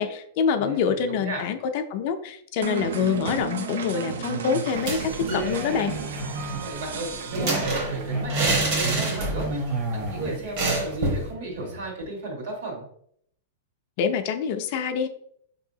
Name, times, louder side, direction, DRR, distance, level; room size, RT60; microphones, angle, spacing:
voice 1, 0.0-6.0 14.0-15.1, left 6 dB, 45° left, 7 dB, 0.4 m, -26 dB
voice 2, 0.6-1.4 6.6-12.8, right 2 dB, 65° right, 0 dB, 1.4 m, -35 dB
sound 1, 2.6-8.3, right 6 dB, 80° right, 0.4 m, -34 dB
sound 2, 3.0-12.0, right 2 dB, 20° right, 0.7 m, -32 dB
sound 3, 4.7-5.5 5.8-5.9 6.2-9.6 9.9-10.1 10.6-11.3, right 2 dB, 45° right, 1.0 m, -28 dB
4.4 x 2.7 x 2.7 m, 0.68 s
supercardioid pair, 155°, 0 cm